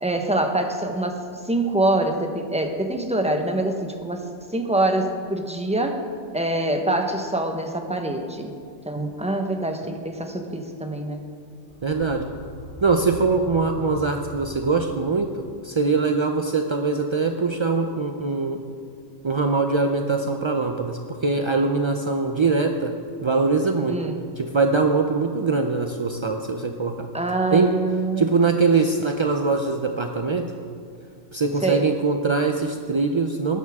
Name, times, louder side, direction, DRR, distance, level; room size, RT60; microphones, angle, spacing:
voice 1, 0.0-1.2 1.4-4.2 4.5-6.0 6.3-8.5 8.8-11.2 23.9-24.2 27.1-28.2 31.6-31.8, right 1 dB, 5° right, 4 dB, 1.0 m, -25 dB
sound 1, 11.6-15.4, equal, 85° left, 3.4 m, -40 dB
voice 2, 11.8-12.3 12.8-18.6 19.2-22.9 23.2-24.0 24.4-27.1 27.5-27.7 28.2-30.5 31.3-33.6, right 4 dB, 45° right, 4 dB, 0.4 m, -22 dB
19.5 x 11.0 x 3.6 m, 2.4 s
omnidirectional pair, 1.3 m